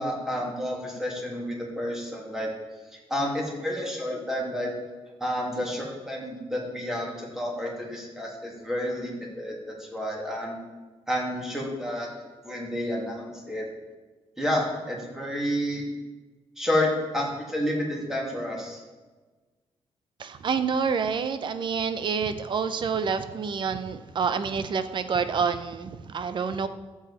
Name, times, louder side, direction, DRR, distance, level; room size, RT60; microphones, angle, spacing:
voice 1, 0.0-2.5 3.1-4.7 5.2-10.6 11.1-12.1 12.4-13.6 14.4-15.9 16.6-18.8, left 1 dB, 5° right, -2 dB, 2.7 m, -30 dB
voice 2, 20.2-26.7, right 6 dB, 45° right, 11 dB, 0.7 m, -28 dB
14.0 x 7.3 x 4.3 m, 1.3 s
cardioid pair, 140°, 11 cm